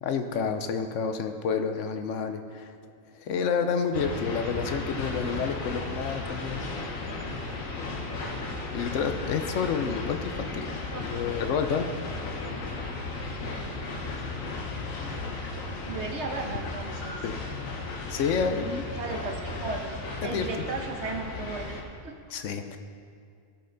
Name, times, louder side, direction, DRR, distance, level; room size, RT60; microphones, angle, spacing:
voice 1, 0.0-2.7 3.1-6.6 8.7-10.7 11.0-11.9 17.2-17.4 18.1-18.8 20.2-20.6 22.3-22.8, left 6 dB, 70° left, 7 dB, 1.0 m, -29 dB
sound 1, 3.9-21.8, left 3 dB, 90° left, 1.4 m, -35 dB
voice 2, 15.3-17.2 18.9-22.5, right 4 dB, 60° right, 2 dB, 1.2 m, -36 dB
16.0 x 5.4 x 3.9 m, 2.2 s
omnidirectional pair, 1.3 m